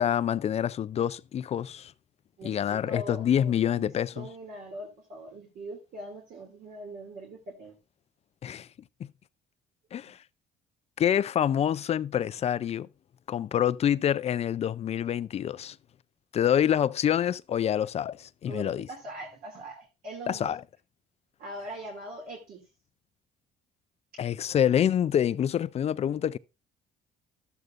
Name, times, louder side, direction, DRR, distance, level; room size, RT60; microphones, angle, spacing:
voice 1, 0.0-1.9 2.4-4.3 8.4-8.7 9.0-9.1 9.9-10.2 11.0-12.9 13.3-15.8 16.3-18.9 20.3-20.6 24.2-26.4, left 9 dB, 40° left, 0.4 m, -26 dB
voice 2, 2.4-3.2 3.8-7.7 18.5-20.5 21.4-22.6 24.1-24.3, right 1 dB, 60° right, 2.5 m, -41 dB
12.0 x 7.9 x 2.5 m
cardioid pair, 110°, 17 cm